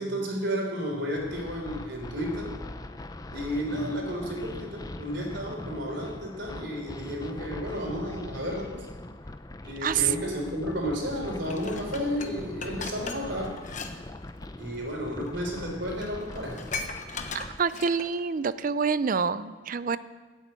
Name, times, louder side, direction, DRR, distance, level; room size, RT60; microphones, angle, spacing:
voice 1, 0.0-2.5 3.3-8.9 9.6-13.6 14.6-16.6, equal, 60° right, 1 dB, 3.6 m, -32 dB
sound 1, 1.2-17.6, left 1 dB, 20° left, 0.5 m, -41 dB
voice 2, 9.8-10.4 17.3-20.0, right 6 dB, 40° right, 15 dB, 0.4 m, -27 dB
Dishes pots and pans, 11.5-13.9 14.2-14.4 15.3-15.4 15.7-15.8 16.0-18.2 18.7-18.8, left 4 dB, 40° left, 1.0 m, -38 dB
12.5 x 8.3 x 8.8 m, 1.4 s
head